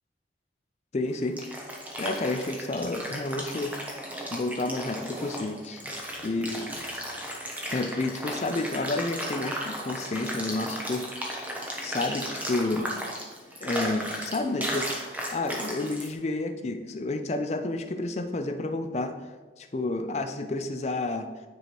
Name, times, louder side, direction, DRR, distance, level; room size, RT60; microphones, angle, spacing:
voice 1, 0.9-1.4 2.0-3.7 4.3-5.9 6.2-6.7 7.7-11.5 11.8-13.0 13.6-15.0 15.3-19.1 19.6-21.3, left 2 dB, 35° left, 8 dB, 0.4 m, -30 dB
sound 1, 1.1-16.1, equal, 10° right, 0.8 m, -35 dB
9.3 x 4.7 x 3.0 m, 1.4 s
head